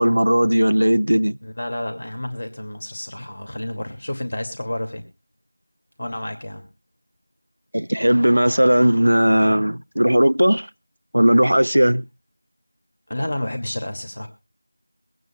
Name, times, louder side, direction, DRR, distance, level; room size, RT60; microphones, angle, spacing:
voice 1, 0.0-1.4 7.7-10.7 11.1-12.0, equal, 85° right, 0.6 m, -17 dB
voice 2, 1.4-5.0 6.0-6.6 13.1-14.3, left 1 dB, 35° left, 2.4 m, -30 dB
23.5 x 9.3 x 2.4 m
figure-of-eight pair, 175°, 0 cm